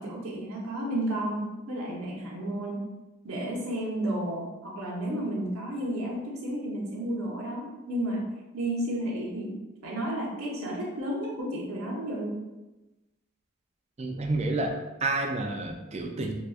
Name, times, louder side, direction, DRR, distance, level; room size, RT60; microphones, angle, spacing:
voice 1, 0.0-2.9 3.2-8.3 8.5-12.4, right 1 dB, 85° right, -3 dB, 0.9 m, -32 dB
voice 2, 14.0-14.7 15.0-16.3, right 2 dB, 30° right, 3 dB, 0.3 m, -29 dB
4.0 x 2.3 x 2.4 m, 1.0 s
head